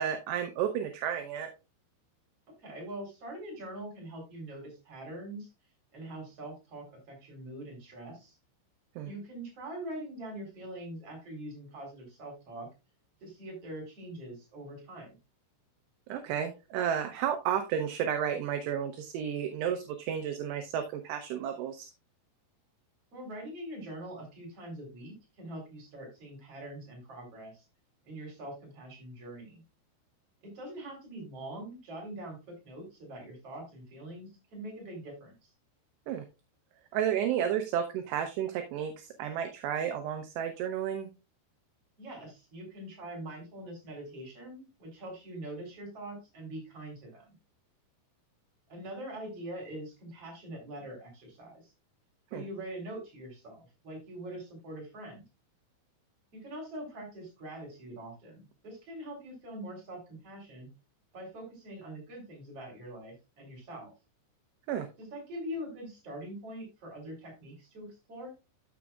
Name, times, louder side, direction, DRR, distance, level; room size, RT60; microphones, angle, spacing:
voice 1, 0.0-1.5 9.0-9.1 16.1-21.9 36.1-36.2 36.9-41.1 52.3-52.4 64.7-64.9, right 9 dB, 80° right, 6 dB, 2.6 m, -32 dB
voice 2, 2.5-5.5 5.9-8.4 9.0-12.7 13.2-15.2 23.1-27.6 28.0-29.6 30.4-35.3 42.0-47.4 48.7-51.7 52.3-55.2 56.3-60.7 61.1-63.9 65.0-68.3, right 1 dB, 35° right, -1 dB, 4.4 m, -43 dB
13.0 x 6.1 x 2.3 m, 0.27 s
omnidirectional pair, 5.5 m